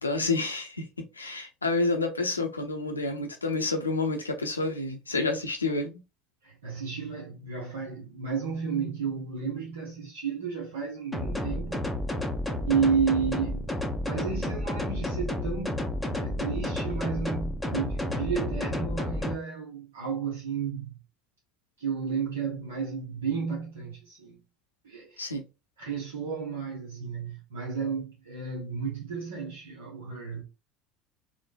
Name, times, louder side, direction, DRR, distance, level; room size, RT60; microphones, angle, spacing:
voice 1, 0.0-0.8 1.2-6.0 25.2-25.4, left 3 dB, 85° left, 0.5 m, -29 dB
voice 2, 6.4-11.8 12.6-15.9 16.2-21.0 21.8-24.4 24.8-25.3 25.8-30.4, right 6 dB, 70° right, 0.7 m, -32 dB
sound 1, 11.1-19.3, left 1 dB, 5° left, 0.5 m, -31 dB
3.1 x 2.1 x 2.3 m
figure-of-eight pair, 65°, 0 cm